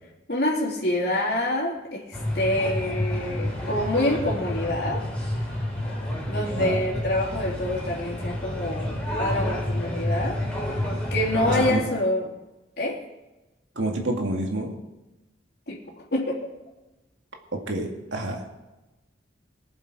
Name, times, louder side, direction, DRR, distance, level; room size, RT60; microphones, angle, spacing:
voice 1, 0.3-5.0 6.3-10.4 11.1-12.3 12.8-13.0 15.7-15.8 16.1-16.5, left 1 dB, 55° left, -4 dB, 3.3 m, -26 dB
sound 1, 2.1-11.7, left 1 dB, 5° left, 3.3 m, -29 dB
voice 2, 13.8-14.8 17.7-18.4, right 1 dB, 80° right, 2 dB, 2.1 m, -28 dB
21.5 x 7.3 x 4.8 m, 1.1 s
head